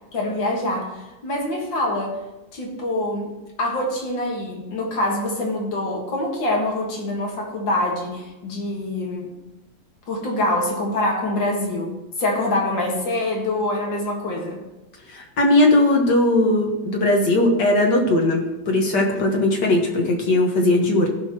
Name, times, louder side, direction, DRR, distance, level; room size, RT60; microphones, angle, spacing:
voice 1, 0.1-2.2 2.5-9.3 10.1-14.6, left 1 dB, 85° left, 0 dB, 2.4 m, -25 dB
voice 2, 15.1-21.1, left 1 dB, 70° left, 1 dB, 2.0 m, -19 dB
15.0 x 6.1 x 3.0 m, 1.0 s
omnidirectional pair, 2.0 m